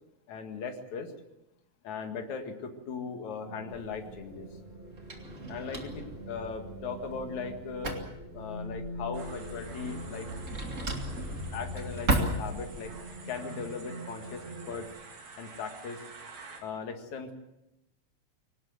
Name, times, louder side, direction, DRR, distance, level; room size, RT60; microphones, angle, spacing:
voice 1, 0.3-1.1 1.8-4.5 5.5-8.0 8.3-10.3 11.1-11.2 11.5-12.9 13.3-14.9 15.4-16.0 16.6-17.3, left 5 dB, 70° left, 5 dB, 3.3 m, -38 dB
sound 1, 3.4-14.9, left 1 dB, 15° left, 5.9 m, -43 dB
Drawer open or close, 3.7-13.0, right 2 dB, 25° right, 2.6 m, -36 dB
sound 2, 9.1-16.6, right 4 dB, 70° right, 4.5 m, -49 dB
24.0 x 18.5 x 7.8 m, 0.87 s
omnidirectional pair, 3.5 m